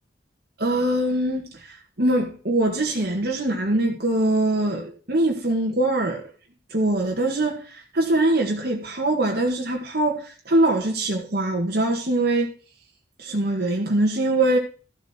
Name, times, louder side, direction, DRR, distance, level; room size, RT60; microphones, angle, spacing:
voice 1, 0.6-6.2 6.7-12.5 13.2-14.6, right 1 dB, 55° right, 1.9 m, -23 dB
14.0 x 7.3 x 4.5 m
head